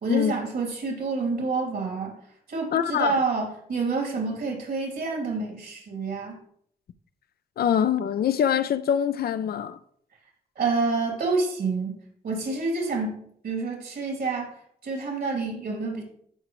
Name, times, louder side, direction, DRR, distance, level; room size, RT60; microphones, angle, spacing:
voice 1, 0.0-2.2 2.5-6.3 10.6-12.0 12.2-14.5 14.8-16.0, right 4 dB, 75° right, 2.9 m, -28 dB
voice 2, 2.7-3.1 7.6-9.8, left 9 dB, 75° left, 0.5 m, -24 dB
12.5 x 5.0 x 3.1 m
cardioid pair, 65°, 16 cm